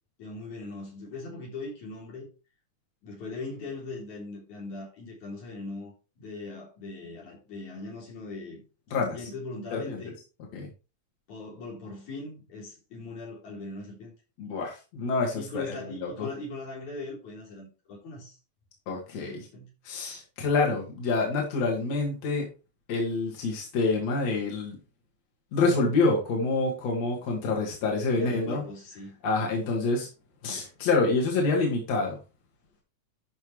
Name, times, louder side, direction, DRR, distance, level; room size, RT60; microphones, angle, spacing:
voice 1, 0.2-2.3 3.0-8.6 9.0-10.1 11.3-14.1 15.4-18.4 19.1-19.7 27.9-29.2, left 3 dB, 85° left, 5.2 m, -40 dB
voice 2, 14.4-16.3 18.9-19.5 19.8-22.5 22.9-24.8 25.5-28.6 29.2-30.1 30.4-32.2, left 3 dB, 65° left, 3.2 m, -27 dB
12.5 x 5.8 x 3.2 m
omnidirectional pair, 3.3 m